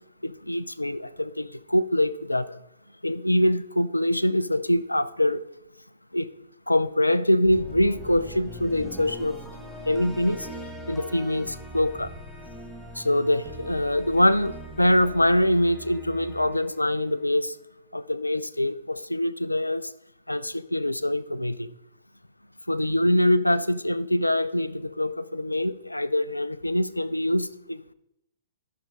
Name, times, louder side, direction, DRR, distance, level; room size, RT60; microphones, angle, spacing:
voice 1, 0.2-2.6 3.0-5.4 6.1-6.3 6.7-9.4 9.9-10.5 10.9-12.1 13.0-17.5 17.9-19.9 20.3-21.7 22.7-27.9, left 1 dB, 85° left, 16 dB, 0.3 m, -24 dB
sound 1, 7.5-17.6, right 1 dB, ahead, 1.1 m, -42 dB
12.0 x 6.5 x 3.6 m, 0.83 s
figure-of-eight pair, 115°, 0 cm